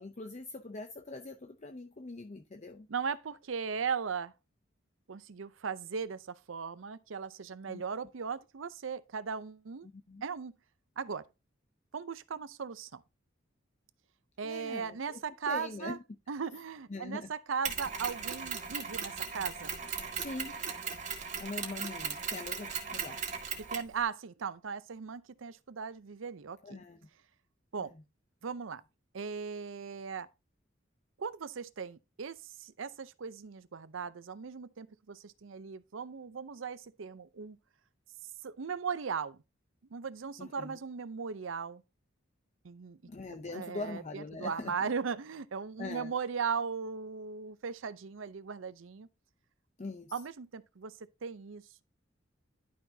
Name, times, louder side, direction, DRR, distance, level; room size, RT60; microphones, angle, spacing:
voice 1, 0.0-2.9 7.7-7.8 9.9-10.2 14.4-15.2 15.5-16.0 16.9-17.3 20.2-20.6 21.4-23.2 26.6-27.0 27.8-28.0 40.4-40.8 43.0-44.7 45.8-46.1 49.8-50.1, left 3 dB, 35° left, 0.6 m, -42 dB
voice 2, 2.9-4.3 5.1-9.9 10.2-10.5 11.0-11.2 11.9-13.0 14.4-16.0 16.3-19.8 23.6-26.6 27.7-27.9 28.4-28.8 29.1-30.3 31.2-37.6 38.4-39.4 39.9-41.8 42.6-43.0 43.3-49.1 50.1-50.9 51.2-51.8, right 6 dB, 80° right, 0.6 m, -38 dB
Mechanisms, 17.6-23.9, right 6 dB, 40° right, 1.9 m, -37 dB
11.5 x 5.9 x 2.7 m
head